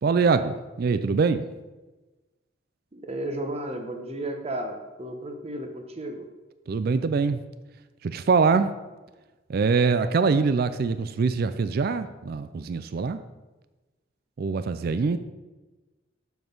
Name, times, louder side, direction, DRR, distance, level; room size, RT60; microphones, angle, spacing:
voice 1, 0.0-1.5 6.7-7.4 8.0-8.8 9.5-13.2 14.4-15.2, right 4 dB, 50° right, 11 dB, 0.4 m, -23 dB
voice 2, 2.9-6.3 15.1-15.2, right 1 dB, 30° right, 5 dB, 0.9 m, -33 dB
6.9 x 6.2 x 5.3 m, 1.2 s
head